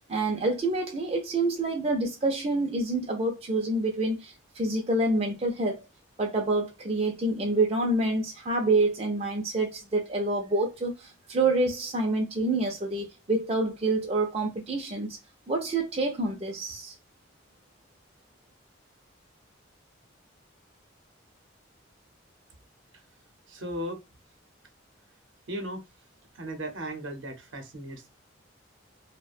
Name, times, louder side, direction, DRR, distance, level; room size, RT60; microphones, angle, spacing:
voice 1, 0.1-5.8 6.2-15.1 15.5-16.9, right 2 dB, 30° right, 0.4 m, -27 dB
voice 2, 23.5-24.0 25.5-25.8 26.4-28.1, right 1 dB, 70° right, 0.7 m, -36 dB
2.4 x 2.1 x 2.4 m
head